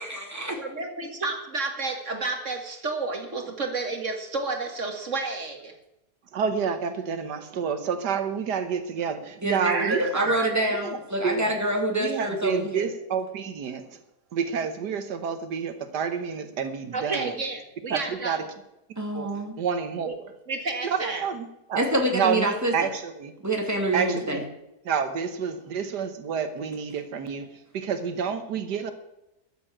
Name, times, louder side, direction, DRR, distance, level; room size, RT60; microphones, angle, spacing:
voice 1, 0.1-0.6 9.4-12.9 19.0-19.5 21.7-22.7 23.4-24.4, right 1 dB, 10° right, 2 dB, 2.6 m, -26 dB
voice 2, 0.6-5.7 9.6-10.4 16.9-18.5 20.1-20.2 20.5-21.2, right 3 dB, 50° right, 5 dB, 2.1 m, -31 dB
voice 3, 6.3-10.3 10.7-11.5 12.0-13.9 14.3-17.3 17.9-18.4 19.1-20.3 20.8-21.8 22.1-23.3 23.9-24.4 24.9-28.9, right 6 dB, 85° right, 9 dB, 1.7 m, -29 dB
13.0 x 7.9 x 8.9 m, 0.89 s
omnidirectional pair, 1.7 m